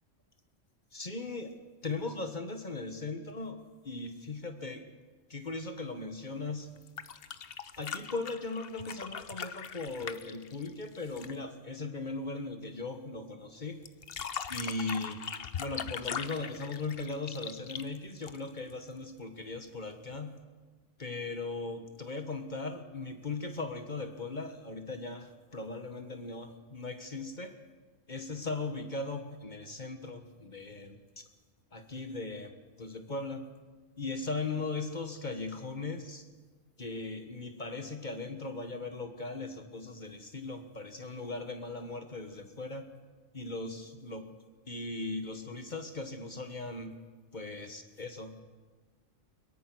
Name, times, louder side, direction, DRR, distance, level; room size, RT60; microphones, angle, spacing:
voice 1, 0.9-1.5 1.8-4.8 5.3-6.7 7.7-13.8 14.5-15.2 15.6-20.4 21.0-27.6 28.1-31.3 31.7-32.5 32.8-33.5 34.0-36.3 36.8-42.9 43.3-44.3 44.7-47.0 47.3-48.4, left 3 dB, 35° left, 7 dB, 1.6 m, -38 dB
sound 1, 6.8-11.4 13.9-18.7 20.1-20.2, left 7 dB, 55° left, 1.0 m, -40 dB
22.0 x 22.0 x 6.2 m, 1.3 s
omnidirectional pair, 1.3 m